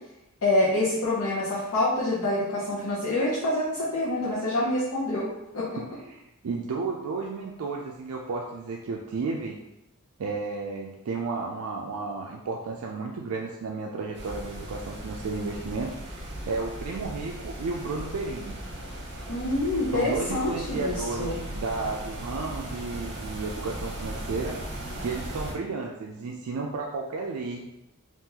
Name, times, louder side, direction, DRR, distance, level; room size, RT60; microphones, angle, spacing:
voice 1, 0.4-5.3 5.5-5.8 19.3-21.3, left 1 dB, 80° left, -8 dB, 0.7 m, -26 dB
voice 2, 5.8-9.6 10.2-18.5 19.9-24.6 25.0-27.7, right 4 dB, 70° right, 0 dB, 0.4 m, -33 dB
sound 1, 14.1-25.5, right 1 dB, 55° right, 0.8 m, -37 dB
3.7 x 2.5 x 2.8 m, 0.91 s
head